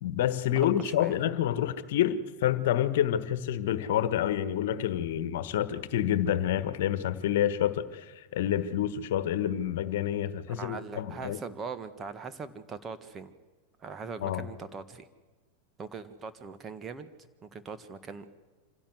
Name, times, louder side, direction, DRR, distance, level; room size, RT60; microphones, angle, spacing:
voice 1, 0.0-11.4 14.2-14.4, left 11 dB, 65° left, 14 dB, 1.3 m, -28 dB
voice 2, 0.6-1.2 10.5-13.3 13.8-15.1 15.8-17.1 17.4-18.3, right 5 dB, 25° right, 11 dB, 1.7 m, -41 dB
26.0 x 16.0 x 8.0 m, 1.3 s
hypercardioid pair, 95°, 0 cm